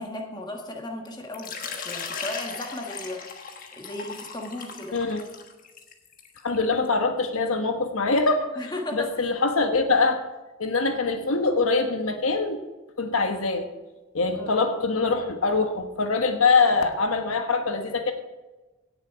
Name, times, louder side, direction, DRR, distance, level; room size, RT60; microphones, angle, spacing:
voice 1, 0.0-5.0 8.6-9.3 14.4-14.6, left 1 dB, 20° left, 1 dB, 1.6 m, -36 dB
Water / Liquid, 1.3-6.9, left 5 dB, 40° left, 1.4 m, -38 dB
voice 2, 6.4-8.6 8.9-10.2 10.6-12.6 13.0-13.7 14.1-18.1, left 3 dB, 90° left, 6 dB, 1.4 m, -23 dB
17.0 x 7.0 x 4.7 m, 1.1 s
head